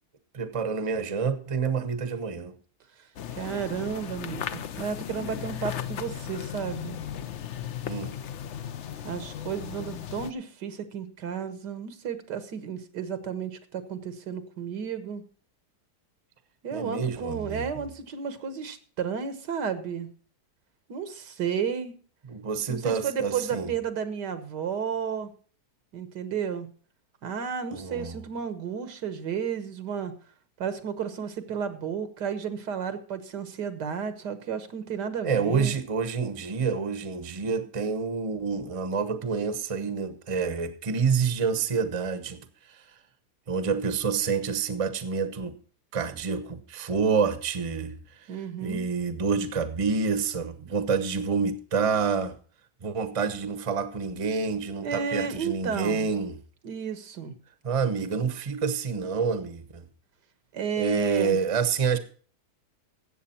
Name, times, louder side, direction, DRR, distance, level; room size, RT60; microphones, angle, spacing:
voice 1, 0.3-2.5 7.8-8.1 16.7-17.8 22.3-23.7 27.7-28.2 35.2-42.4 42.7-42.8 43.5-45.6 45.9-52.4 52.8-56.4 57.6-59.8 60.8-62.0, right 5 dB, 25° right, 0.8 m, -28 dB
sound 1, 3.2-10.3, left 9 dB, 55° left, 0.8 m, -36 dB
voice 2, 3.4-7.0 9.0-15.2 16.6-20.1 20.9-21.9 22.7-25.3 25.9-26.7 27.2-30.1 30.6-35.7 48.3-48.9 54.8-56.1 56.6-57.4 60.5-61.4, right 7 dB, 80° right, 1.8 m, -32 dB
14.0 x 8.2 x 4.3 m
omnidirectional pair, 1.8 m